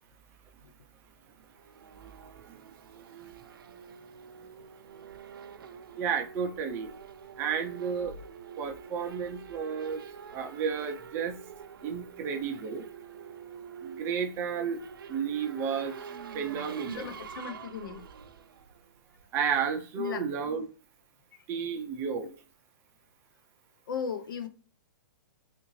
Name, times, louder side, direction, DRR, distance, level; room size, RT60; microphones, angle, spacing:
Race car auto racing / Accelerating revving vroom, 1.3-19.4, right 7 dB, 90° right, 0.5 m, -46 dB
voice 1, 2.9-3.4 6.0-6.9 7.4-8.1 8.6-11.4 11.8-12.8 13.8-14.8 15.1-16.0 16.3-17.2 19.3-20.6 21.5-22.3, right 6 dB, 20° right, 0.5 m, -32 dB
voice 2, 16.9-18.1 20.0-20.2 23.9-24.5, left 7 dB, 75° left, 0.6 m, -36 dB
3.6 x 2.5 x 3.1 m
hypercardioid pair, 155°, 11 cm